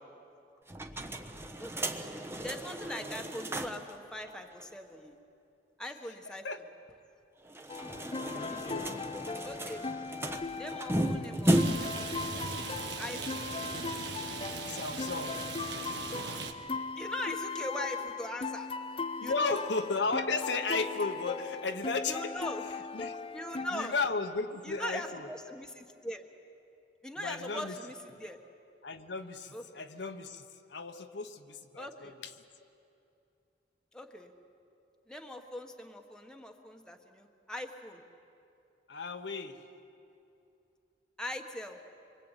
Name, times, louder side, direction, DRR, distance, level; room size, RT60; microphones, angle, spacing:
sound 1, 0.7-3.9 4.3-4.4 4.6-4.7 7.5-12.0, equal, 15° right, 1.3 m, -34 dB
voice 1, 1.6-1.9 2.4-5.1 5.8-6.5 7.8-8.6 9.4-9.9 10.6-13.5 17.0-18.7 19.2-19.5 22.1-22.6 23.3-23.9 24.6-26.3 27.0-28.4 29.5-29.8 31.7-32.2 33.9-34.3 35.1-38.0 41.2-41.8, left 1 dB, 5° left, 3 dB, 1.5 m, -41 dB
voice 2, 6.2-6.6 8.3-9.1 14.7-15.5 19.2-22.3 22.9-23.2 23.7-25.3 27.2-27.7 28.8-32.3 38.9-39.6, left 4 dB, 70° left, 6 dB, 1.3 m, -35 dB
sound 2, 7.7-23.9, left 4 dB, 30° left, 0.5 m, -39 dB
Rain, 11.5-16.5, right 4 dB, 70° right, 1.7 m, -39 dB
26.0 x 24.0 x 9.1 m, 2.7 s
head